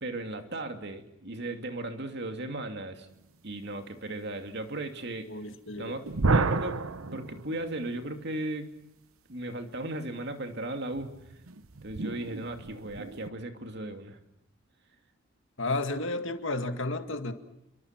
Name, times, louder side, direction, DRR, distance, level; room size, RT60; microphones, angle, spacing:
voice 1, 0.0-3.1 3.4-5.3 5.8-6.8 7.1-8.7 9.3-11.1 11.8-14.2, right 2 dB, 55° right, 6 dB, 2.6 m, -36 dB
voice 2, 5.2-6.0 15.6-17.3, left 2 dB, 60° left, 7 dB, 2.2 m, -32 dB
sound 1, 6.1-8.0 10.9-13.3, right 3 dB, 85° right, 1.0 m, -31 dB
28.5 x 24.0 x 6.1 m, 0.87 s
head